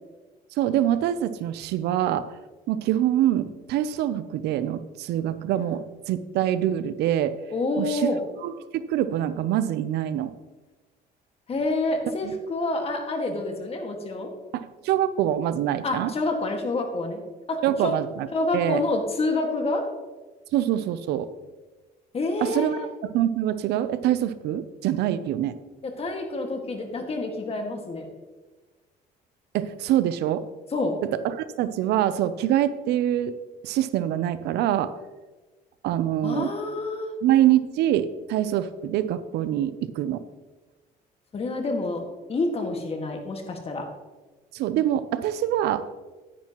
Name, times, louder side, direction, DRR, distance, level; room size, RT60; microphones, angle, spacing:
voice 1, 0.6-2.3 2.7-7.4 7.8-8.1 8.4-10.3 12.2-12.3 14.5-16.1 17.6-18.3 18.5-18.8 20.5-21.3 22.4-25.5 29.5-30.4 31.2-33.3 33.6-34.9 35.8-36.5 37.2-40.2 44.5-45.8, right 11 dB, 80° right, 13 dB, 0.6 m, -25 dB
voice 2, 7.5-8.2 11.5-14.3 15.8-17.2 17.5-18.0 18.3-19.8 22.1-22.9 25.8-28.1 30.7-30.9 36.2-37.1 41.3-42.0 42.3-43.9, left 2 dB, 35° left, 4 dB, 1.8 m, -28 dB
10.5 x 10.0 x 3.0 m, 1.2 s
cardioid pair, 110°, 17 cm